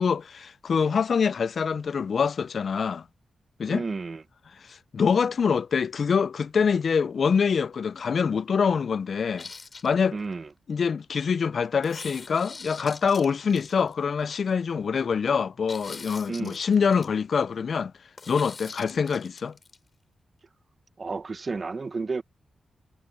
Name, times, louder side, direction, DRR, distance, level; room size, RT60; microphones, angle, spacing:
voice 1, 0.0-3.0 3.6-3.8 4.7-9.5 9.8-10.2 10.7-17.9 18.3-19.5, left 6 dB, 60° left, 0.4 m, -25 dB
voice 2, 3.7-4.2 10.1-10.5 16.3-16.6 21.0-22.2, right 4 dB, 45° right, 0.9 m, -32 dB
sound 1, 9.4-10.3 11.8-14.1 15.7-17.1 18.2-19.8, left 4 dB, 40° left, 7.9 m, -43 dB
cardioid pair, 80°, 0 cm